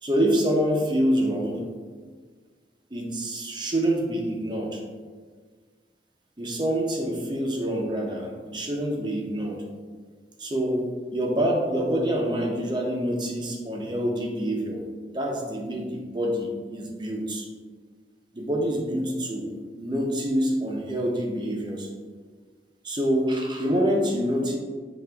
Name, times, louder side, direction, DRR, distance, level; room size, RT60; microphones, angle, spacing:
voice 1, 0.0-1.6 2.9-4.8 6.4-9.6 10.4-14.8 15.1-17.5 18.3-21.9 22.8-24.6, equal, 25° right, 0 dB, 0.6 m, -26 dB
6.7 x 3.4 x 2.3 m, 1.6 s
head